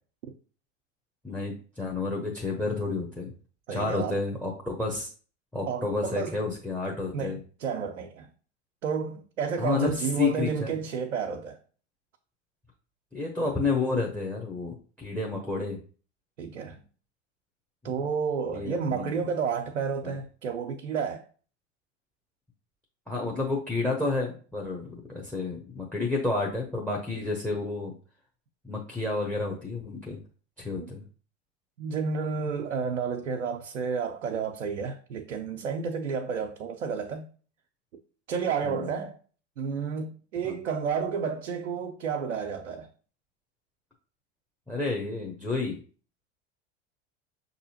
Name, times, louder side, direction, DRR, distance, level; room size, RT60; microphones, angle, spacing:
voice 1, 1.2-3.3 3.7-5.1 5.5-7.4 9.6-10.8 13.1-15.8 17.8-17.9 18.5-19.2 20.0-20.2 23.1-27.9 28.6-30.2 30.6-31.0 38.6-38.9 40.5-40.6 44.7-45.8, left 3 dB, 5° left, 0.7 m, -30 dB
voice 2, 3.7-4.2 5.7-6.4 7.1-8.3 8.8-11.6 16.4-16.8 17.8-21.3 30.8-30.9 31.8-37.3 38.3-39.2 39.6-42.9, right 6 dB, 85° right, 0.5 m, -31 dB
5.9 x 2.8 x 2.8 m
hypercardioid pair, 80°, 36 cm